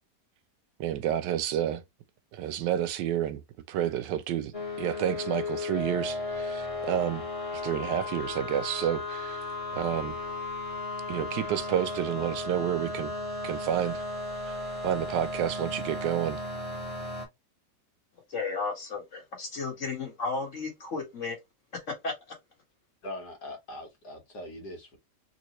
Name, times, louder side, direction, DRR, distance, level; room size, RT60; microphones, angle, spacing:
voice 1, 0.8-1.8 2.3-3.4 3.7-7.2 7.5-9.4 9.7-10.2 11.1-13.1 13.4-14.0 14.5-14.6 14.8-16.4, right 10 dB, 85° right, 1.2 m, -30 dB
sound 1, 4.5-17.3, left 2 dB, 20° left, 1.7 m, -35 dB
voice 2, 18.3-21.4 21.7-22.1, left 4 dB, 45° left, 1.8 m, -33 dB
voice 3, 23.0-25.0, left 1 dB, 70° left, 1.9 m, -41 dB
3.8 x 2.8 x 2.9 m
omnidirectional pair, 1.8 m